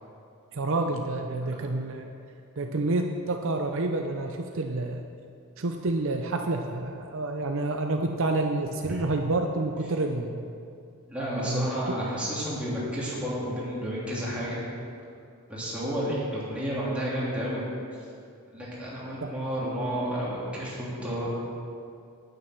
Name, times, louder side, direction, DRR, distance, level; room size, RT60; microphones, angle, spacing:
voice 1, 0.5-2.1 2.6-5.0 5.6-10.5 11.5-12.0 16.1-16.2 19.2-19.3, right 2 dB, 60° right, 4 dB, 0.6 m, -29 dB
voice 2, 11.1-14.6 15.5-17.6 18.5-21.3, equal, 5° right, -8 dB, 3.1 m, -31 dB
9.6 x 9.4 x 6.0 m, 2.4 s
head